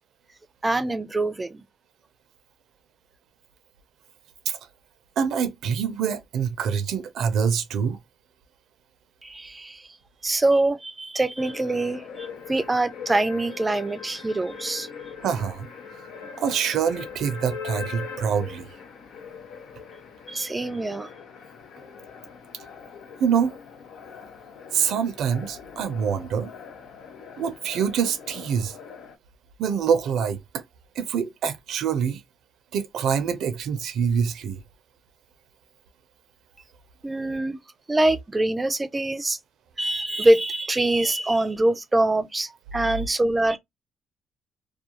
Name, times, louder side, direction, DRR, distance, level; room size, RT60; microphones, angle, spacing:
voice 1, 0.6-1.6 9.2-9.8 10.2-14.9 20.3-21.1 37.0-37.6 37.9-39.4 39.8-43.6, right 2 dB, 20° right, 0.4 m, -24 dB
voice 2, 5.2-8.0 15.2-15.7 16.4-18.7 23.2-23.5 24.7-26.5 27.4-28.7 29.6-30.6 31.0-32.2 32.7-34.6, right 7 dB, 75° right, 0.5 m, -25 dB
sound 1, 11.4-29.2, left 6 dB, 80° left, 0.6 m, -41 dB
2.3 x 2.3 x 2.8 m
cardioid pair, 90°, 0 cm